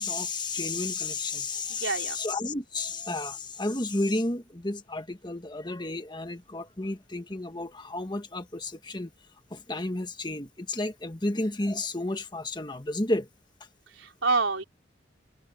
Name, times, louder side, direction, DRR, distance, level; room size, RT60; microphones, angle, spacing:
voice 1, 0.0-9.1 9.5-13.3, left 2 dB, 25° left, 1.4 m, -32 dB
voice 2, 1.7-2.2 13.9-14.6, right 3 dB, 90° right, 4.2 m, -27 dB
head